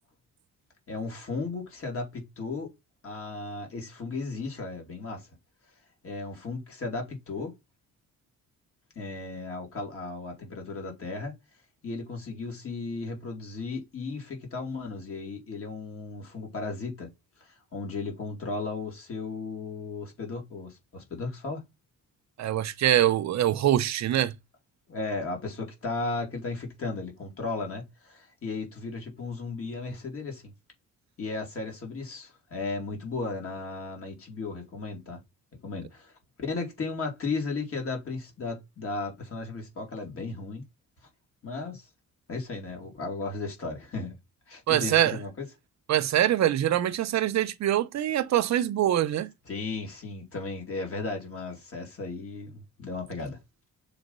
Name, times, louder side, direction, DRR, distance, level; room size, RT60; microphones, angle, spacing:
voice 1, 0.9-2.7 3.0-5.3 6.0-7.5 8.9-11.4 11.8-17.1 17.4-21.7 24.9-30.5 31.2-35.2 35.6-36.1 36.4-40.6 41.4-41.9 42.3-44.2 44.5-45.5 49.5-53.4, left 3 dB, 45° left, 3.0 m, -35 dB
voice 2, 22.4-24.3 44.7-45.2 45.9-49.3, right 12 dB, 60° right, 0.7 m, -24 dB
6.6 x 4.2 x 5.4 m
cardioid pair, 175°, 31 cm